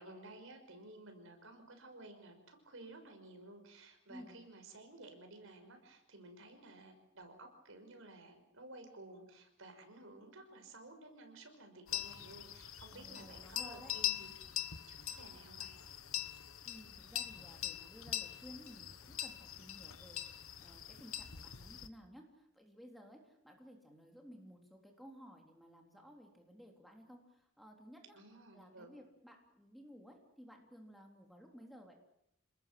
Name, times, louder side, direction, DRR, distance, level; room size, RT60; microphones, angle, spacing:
voice 1, 0.0-14.3 14.9-15.8 28.1-28.9, right 2 dB, 65° right, 6 dB, 5.8 m, -54 dB
sound 1, 11.9-21.9, left 11 dB, 70° left, 1.4 m, -43 dB
voice 2, 12.9-13.9 16.6-28.2 28.5-31.9, equal, ahead, 1 dB, 3.5 m, -56 dB
28.5 x 20.0 x 7.7 m, 0.79 s
head